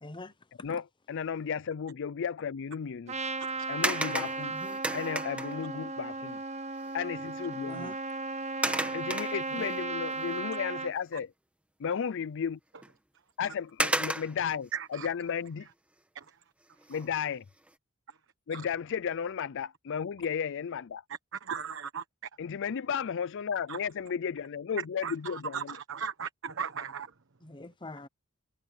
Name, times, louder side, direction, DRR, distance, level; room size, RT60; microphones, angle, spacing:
voice 1, 0.0-0.3 4.5-4.8 7.7-7.9 9.6-9.7 27.4-28.1, left 2 dB, 20° left, 0.8 m, -44 dB
voice 2, 0.6-3.1 3.7-4.6 4.9-6.4 6.9-8.0 8.9-11.3 11.8-12.6 13.4-15.7 16.9-17.4 18.5-21.0 22.4-25.8, left 7 dB, 60° left, 0.4 m, -34 dB
Trumpet, 3.1-10.9, right 3 dB, 30° right, 0.8 m, -36 dB
sound 1, 3.8-5.7 6.9-7.0 7.4-7.6 8.6-9.8 10.3-10.4 12.8-12.9 13.8-14.5 16.8-17.2 17.7-17.8, right 1 dB, 5° right, 1.5 m, -32 dB
voice 3, 14.7-15.1 16.1-16.2 18.5-18.6 21.3-22.0 23.7-23.8 25.0-27.1, right 7 dB, 60° right, 1.2 m, -37 dB
head